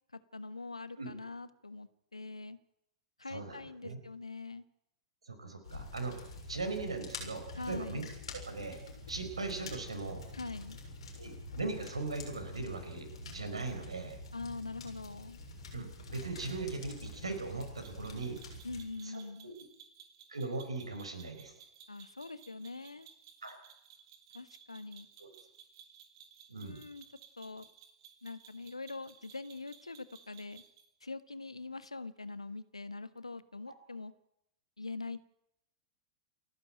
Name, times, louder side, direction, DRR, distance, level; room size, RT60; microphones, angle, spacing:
voice 1, 0.1-2.6 3.2-4.6 7.5-8.1 10.3-10.8 14.3-15.4 18.6-19.5 21.9-23.1 24.3-25.1 26.6-27.0 27.4-27.7 28.2-30.6 31.0-34.1 34.8-35.2, left 3 dB, 85° left, 14 dB, 1.3 m, -43 dB
voice 2, 3.3-4.0 5.2-8.1 8.4-8.8 9.1-10.2 11.2-14.2 15.7-18.4 19.0-19.5 20.3-21.5 23.4-23.6 25.2-25.3 26.5-26.8, right 3 dB, 80° right, 7 dB, 4.9 m, -39 dB
sound 1, 5.6-18.8, left 2 dB, 70° left, 7.1 m, -47 dB
sound 2, 17.8-30.9, right 8 dB, 50° right, 3.9 m, -58 dB
29.0 x 12.0 x 8.9 m, 0.80 s
figure-of-eight pair, 95°, 3 cm